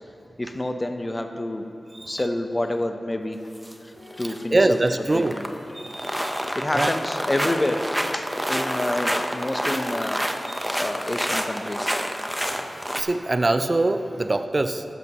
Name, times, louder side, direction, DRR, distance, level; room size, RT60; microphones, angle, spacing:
voice 1, 0.4-1.7 2.0-3.5 3.8-4.8 5.1-5.5 6.5-7.9 8.1-10.2 10.7-12.0, left 1 dB, 30° left, 5 dB, 0.8 m, -28 dB
sound 1, 3.6-3.7 4.1-4.4 4.7-5.6 5.9-13.0, equal, 5° right, 0.9 m, -28 dB
sound 2, 4.0-9.4, left 2 dB, 85° left, 1.8 m, -45 dB
voice 2, 4.2-5.4 5.7-6.9 10.5-10.8 13.0-14.9, right 2 dB, 45° right, 9 dB, 0.5 m, -24 dB
14.5 x 12.5 x 3.0 m, 3.0 s
cardioid pair, 40°, 0 cm